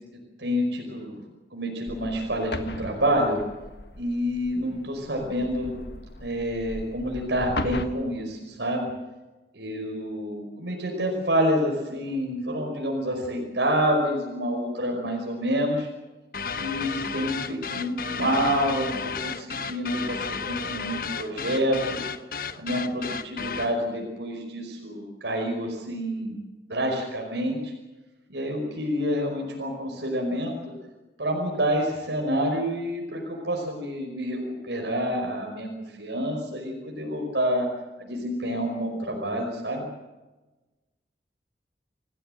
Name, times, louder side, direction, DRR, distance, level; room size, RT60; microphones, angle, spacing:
voice 1, 0.4-1.2 1.5-3.4 4.0-5.9 6.2-8.9 9.5-15.9 16.5-22.1 22.6-26.4 26.7-27.7 28.3-30.7 31.2-35.7 36.0-37.7 38.0-39.9, equal, 85° right, 1 dB, 5.3 m, -28 dB
sound 1, 1.9-7.9, left 1 dB, 75° left, 1.8 m, -37 dB
sound 2, 16.3-23.8, left 5 dB, 55° left, 1.1 m, -33 dB
28.0 x 17.0 x 8.0 m, 1.1 s
head